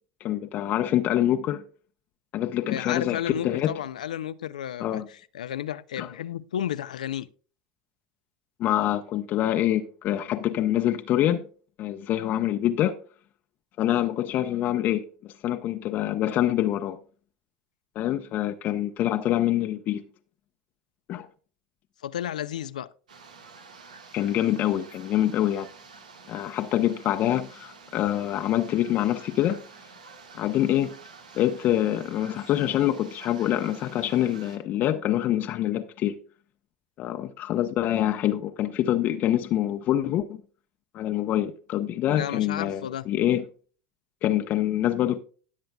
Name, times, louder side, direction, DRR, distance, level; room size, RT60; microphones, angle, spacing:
voice 1, 0.2-1.6 2.3-3.7 4.8-5.1 6.0-6.1 8.6-11.5 11.8-13.0 13.8-17.0 17.9-20.0 21.1-21.3 24.1-25.7 26.3-29.6 30.3-30.9 31.3-36.2 37.0-40.4 40.9-43.4 44.2-45.2, left 12 dB, 50° left, 0.8 m, -25 dB
voice 2, 2.7-7.3 22.0-22.9 42.1-43.0, left 10 dB, 85° left, 0.5 m, -32 dB
sound 1, 23.1-34.6, right 5 dB, 90° right, 1.6 m, -49 dB
18.0 x 7.7 x 2.3 m
hypercardioid pair, 85°, 4 cm